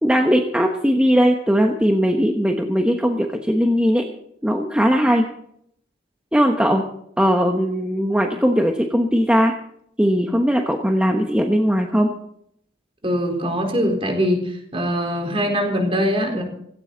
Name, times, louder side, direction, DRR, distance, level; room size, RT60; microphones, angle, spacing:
voice 1, 0.0-4.0 4.4-5.2 6.3-6.8 7.2-9.5 10.0-12.1, equal, 5° right, 2 dB, 1.1 m, -19 dB
voice 2, 13.0-16.4, equal, 30° right, 2 dB, 4.3 m, -22 dB
17.5 x 17.0 x 4.0 m, 0.70 s
head